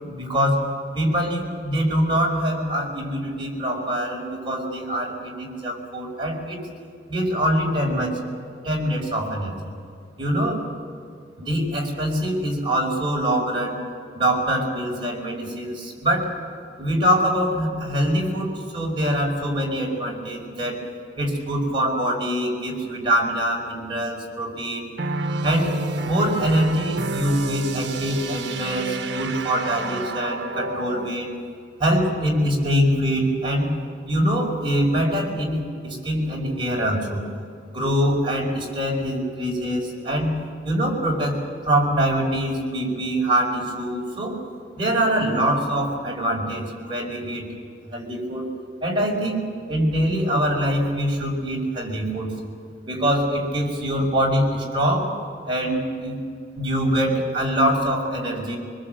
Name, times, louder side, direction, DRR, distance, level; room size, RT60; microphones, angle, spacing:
voice 1, 0.0-0.6 0.9-6.6 7.1-8.2 8.6-9.7 10.2-10.6 11.4-13.8 14.1-16.3 16.8-20.8 21.2-24.9 25.4-25.7 26.0-31.3 31.8-33.8 34.1-37.2 37.7-40.3 40.6-44.4 44.8-47.5 47.9-48.4 48.8-49.4 49.7-52.3 52.9-55.1 55.5-56.2 56.5-58.6, equal, 30° right, -2 dB, 4.9 m, -24 dB
sound 1, 25.0-31.2, right 3 dB, 75° right, 1.0 m, -29 dB
24.5 x 21.0 x 7.8 m, 2.2 s
head